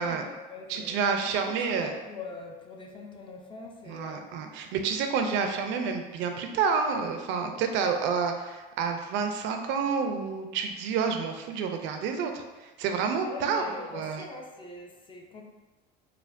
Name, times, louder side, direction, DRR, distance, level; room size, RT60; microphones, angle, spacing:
voice 1, 0.0-1.3 1.7-4.3 13.2-15.4, left 3 dB, 25° left, 1 dB, 0.5 m, -43 dB
voice 2, 0.7-1.9 3.9-14.3, right 5 dB, 65° right, 5 dB, 0.5 m, -29 dB
4.2 x 2.2 x 2.5 m, 1.2 s
supercardioid pair, 105°, 21 cm